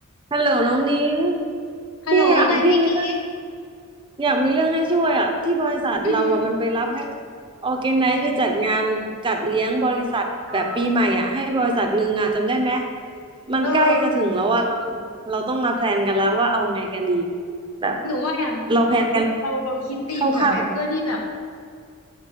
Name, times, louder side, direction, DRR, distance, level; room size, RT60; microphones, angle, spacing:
voice 1, 0.3-1.4 2.1-3.1 4.2-7.1 7.6-12.9 13.5-17.3 17.8-18.0 18.7-19.3 20.2-20.5, right 2 dB, 25° right, 3 dB, 0.5 m, -21 dB
voice 2, 2.0-3.1 6.0-6.4 13.6-14.0 18.0-18.8 19.4-21.2, left 2 dB, 80° left, 0 dB, 1.0 m, -25 dB
sound 1, 10.5-10.9 13.8-14.2, right 1 dB, 10° left, 0.9 m, -36 dB
7.3 x 4.1 x 3.7 m, 2.2 s
head